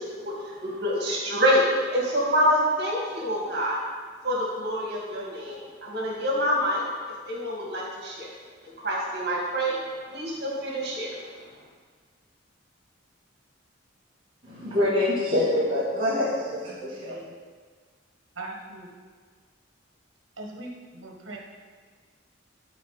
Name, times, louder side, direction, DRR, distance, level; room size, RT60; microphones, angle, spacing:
voice 1, 0.0-3.8 4.2-6.8 7.3-8.3 8.8-9.7 10.1-11.2, equal, 50° right, -4 dB, 2.3 m, -26 dB
voice 2, 14.4-17.2, left 1 dB, 25° right, -11 dB, 1.7 m, -25 dB
voice 3, 17.0-17.3 18.3-18.9 20.4-21.4, right 2 dB, 70° right, 0 dB, 1.5 m, -40 dB
13.0 x 4.7 x 4.2 m, 1.5 s
head